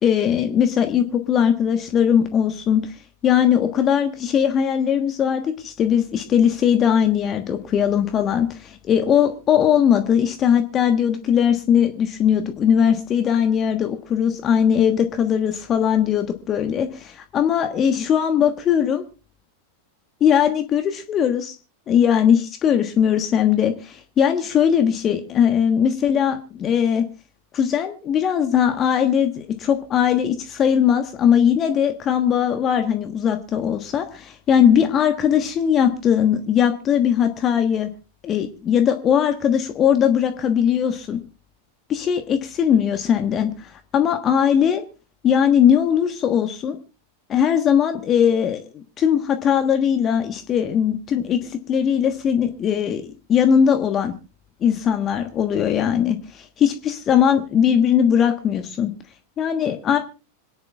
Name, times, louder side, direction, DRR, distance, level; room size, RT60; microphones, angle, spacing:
voice 1, 0.0-19.0 20.2-21.5 21.9-27.1 27.5-37.9 38.2-41.2 41.9-44.8 45.2-46.8 47.3-54.1 54.6-58.9 59.4-60.0, left 8 dB, 30° left, 7 dB, 1.3 m, -19 dB
26.5 x 10.5 x 2.4 m, 0.33 s
figure-of-eight pair, 90°, 0 cm